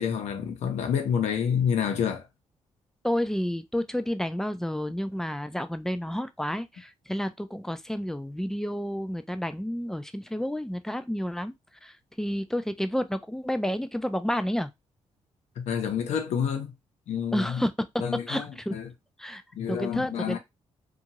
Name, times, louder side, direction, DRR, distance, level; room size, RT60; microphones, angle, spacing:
voice 1, 0.0-2.3 15.6-16.7 17.1-17.6 18.0-18.9 19.5-20.4, left 7 dB, 80° left, 0.8 m, -28 dB
voice 2, 3.0-11.5 11.8-14.7 17.3-17.7 18.3-18.7 19.2-19.4 19.7-20.4, equal, 5° left, 0.3 m, -30 dB
2.7 x 2.4 x 2.9 m
cardioid pair, 105°, 11 cm